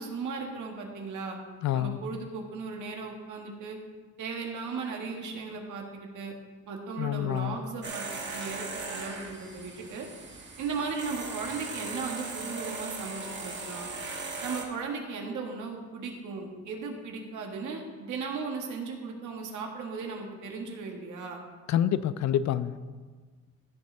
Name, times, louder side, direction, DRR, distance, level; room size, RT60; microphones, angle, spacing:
voice 1, 0.0-1.4 1.7-3.8 4.2-6.3 6.7-10.1 10.6-13.9 14.4-21.4, right 4 dB, 80° right, 1 dB, 1.8 m, -36 dB
voice 2, 1.6-2.0 7.0-7.6 21.7-22.8, left 11 dB, 65° left, 15 dB, 0.5 m, -27 dB
sound 1, 7.8-14.6, right 3 dB, 40° right, 2.0 m, -38 dB
15.5 x 6.5 x 3.4 m, 1.4 s
cardioid pair, 90°, 30 cm